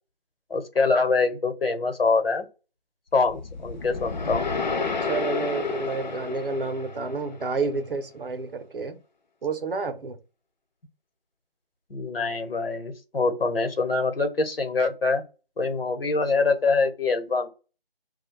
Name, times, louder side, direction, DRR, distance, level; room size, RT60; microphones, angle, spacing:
voice 1, 0.5-2.5 3.1-4.5 11.9-15.2 15.6-17.5, left 4 dB, 70° left, 0.9 m, -24 dB
sound 1, 3.2-7.6, left 4 dB, 50° left, 0.5 m, -31 dB
voice 2, 5.0-9.0 9.4-10.2, right 4 dB, 65° right, 0.6 m, -30 dB
2.5 x 2.2 x 3.2 m
figure-of-eight pair, 165°, 30 cm